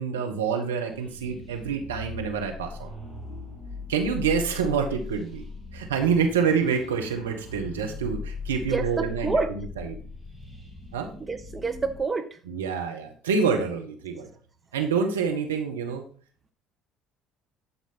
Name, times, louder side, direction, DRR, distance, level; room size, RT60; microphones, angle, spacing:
voice 1, 0.0-2.9 3.9-5.4 5.7-10.0 10.9-11.1 12.5-14.3 14.7-16.0, right 6 dB, 85° right, 3 dB, 1.6 m, -27 dB
sound 1, 0.9-12.0, left 4 dB, 5° right, 3.5 m, -39 dB
voice 2, 8.7-9.5 11.2-12.4, right 4 dB, 25° right, 9 dB, 1.1 m, -28 dB
11.5 x 5.1 x 5.7 m, 0.42 s
hypercardioid pair, 60°, 0 cm